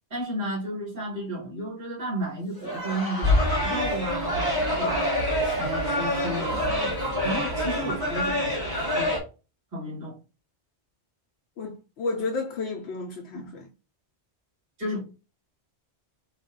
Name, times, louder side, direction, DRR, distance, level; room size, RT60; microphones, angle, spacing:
voice 1, 0.1-3.3 3.6-5.1 5.6-6.9 7.2-9.2 9.7-10.2 14.8-15.0, equal, 50° right, 2.0 m, -33 dB
Crowd, 2.5-6.7, right 1 dB, 20° left, 0.8 m, -36 dB
sound 1, 3.2-9.2, left 1 dB, 20° right, 1.4 m, -26 dB
voice 2, 11.6-13.7, left 3 dB, 70° left, 0.9 m, -32 dB
3.3 x 2.3 x 3.7 m
omnidirectional pair, 1.1 m